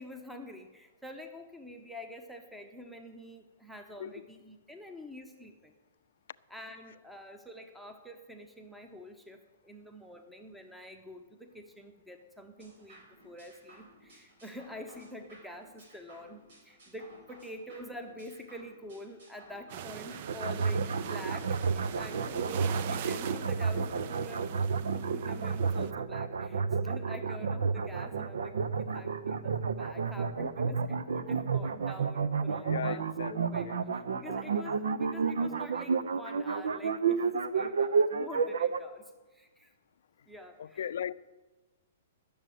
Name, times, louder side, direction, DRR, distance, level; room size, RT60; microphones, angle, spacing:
voice 1, 0.0-5.7 6.5-39.7 40.3-40.8, left 1 dB, ahead, 0.9 m, -47 dB
sound 1, 12.6-22.2, right 1 dB, 70° right, 5.5 m, -57 dB
sound 2, 19.7-25.9, right 10 dB, 50° right, 0.5 m, -42 dB
sound 3, 20.3-38.8, right 5 dB, 85° right, 0.8 m, -30 dB
voice 2, 32.6-33.4 33.6-33.8 40.6-41.1, left 9 dB, 70° left, 0.4 m, -37 dB
12.0 x 7.0 x 9.3 m
hypercardioid pair, 145°, 0 cm